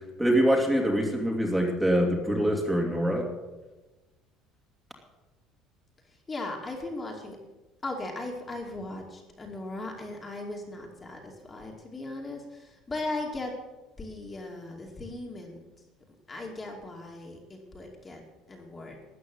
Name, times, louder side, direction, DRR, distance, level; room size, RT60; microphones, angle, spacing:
voice 1, 0.2-3.3, equal, 5° right, 0 dB, 2.6 m, -24 dB
voice 2, 6.0-7.4 7.8-13.5 14.0-15.7 16.3-18.2 18.5-19.0, left 2 dB, 20° left, 1 dB, 2.6 m, -38 dB
13.5 x 8.6 x 9.5 m, 1.1 s
cardioid pair, 140°, 0 cm